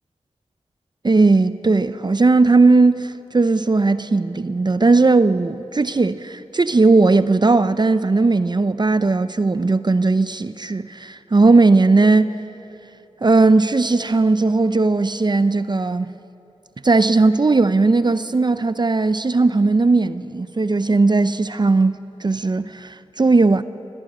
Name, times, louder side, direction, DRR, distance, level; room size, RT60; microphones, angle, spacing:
voice 1, 1.0-12.4 13.2-16.1 16.8-23.6, right 3 dB, 40° right, 0.6 m, -17 dB
20.0 x 14.5 x 9.2 m
cardioid pair, 45°, 12 cm